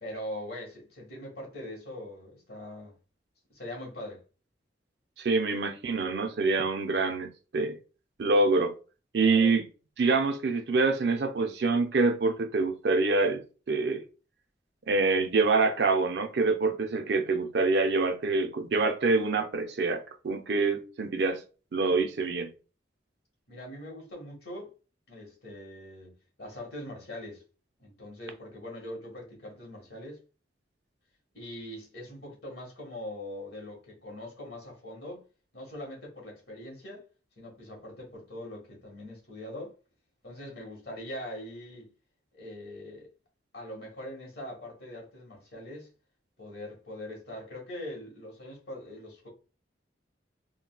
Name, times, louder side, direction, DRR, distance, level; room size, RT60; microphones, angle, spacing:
voice 1, 0.0-2.9 3.5-4.2 9.2-9.5 23.5-24.7 25.1-27.4 27.8-30.2 31.3-35.2 35.5-37.0 37.4-39.7 40.2-41.9 42.3-43.1 43.5-45.9 46.4-49.3, left 1 dB, 60° left, 1.4 m, -42 dB
voice 2, 5.2-7.8 8.2-8.7 9.1-9.6 10.0-13.4 13.7-14.0 14.9-21.4 21.7-22.5, right 3 dB, 60° right, 0.5 m, -26 dB
3.8 x 2.2 x 2.2 m
head